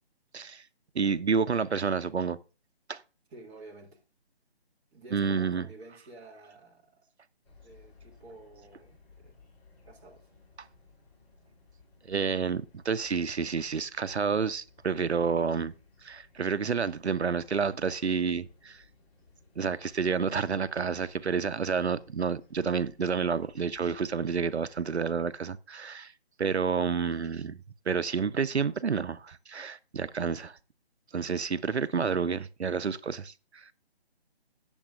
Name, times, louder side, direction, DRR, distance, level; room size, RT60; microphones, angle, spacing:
voice 1, 0.3-0.6 0.9-2.4 2.9-3.0 5.1-5.7 10.6-10.7 12.1-15.7 16.0-18.8 19.6-26.1 26.4-30.6 31.1-33.7, right 5 dB, 80° right, 0.7 m, -29 dB
voice 2, 3.3-4.0 4.9-7.1 7.6-9.4 9.8-10.3, right 2 dB, 10° right, 1.5 m, -50 dB
sound 1, 7.4-24.9, left 4 dB, 20° left, 3.3 m, -60 dB
17.5 x 7.2 x 2.4 m
figure-of-eight pair, 155°, 33 cm